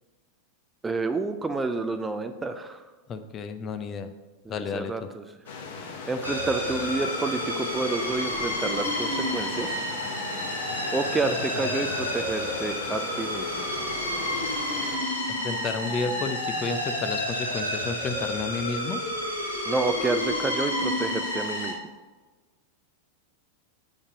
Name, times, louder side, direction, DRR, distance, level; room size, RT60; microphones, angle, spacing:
voice 1, 0.8-2.8 4.5-5.2 6.1-9.8 10.9-13.7 19.7-21.8, right 3 dB, 10° right, 9 dB, 0.5 m, -29 dB
voice 2, 3.1-4.1 4.5-4.9 15.4-19.0, left 4 dB, 30° left, 9 dB, 0.6 m, -31 dB
sound 1, 5.5-15.0, left 4 dB, 65° left, 1.6 m, -38 dB
sound 2, 6.2-21.7, left 1 dB, 90° left, 2.4 m, -30 dB
8.2 x 5.2 x 5.1 m, 1.3 s
figure-of-eight pair, 90°, 0 cm